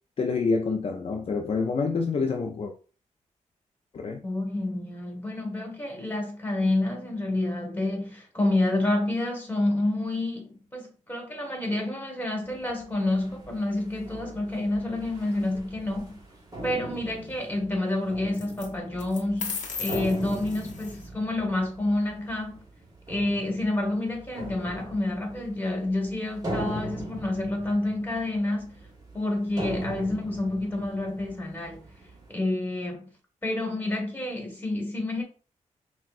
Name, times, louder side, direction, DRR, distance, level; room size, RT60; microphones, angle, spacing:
voice 1, 0.2-2.7 3.9-4.2, left 4 dB, 50° left, 0.5 m, -27 dB
voice 2, 4.2-16.2 16.6-22.6 23.1-28.7 29.1-31.8 32.3-33.1 33.4-35.2, left 2 dB, 15° left, 1.7 m, -28 dB
sound 1, 12.4-32.3, right 1 dB, 30° right, 1.3 m, -40 dB
sound 2, 15.5-16.0 18.3-18.7 19.0-21.1, left 5 dB, 75° left, 0.9 m, -36 dB
5.9 x 2.3 x 2.5 m
cardioid pair, 85°, 13 cm